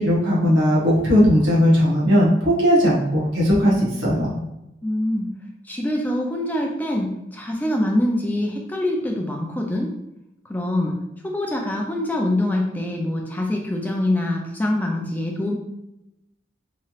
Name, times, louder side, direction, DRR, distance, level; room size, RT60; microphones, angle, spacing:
voice 1, 0.0-3.7 4.0-4.3, equal, 80° right, -6 dB, 1.0 m, -17 dB
voice 2, 4.8-5.3 5.6-9.9 10.5-10.9 11.2-15.5, left 1 dB, 10° left, 0 dB, 0.4 m, -24 dB
3.1 x 2.8 x 2.4 m, 0.87 s
head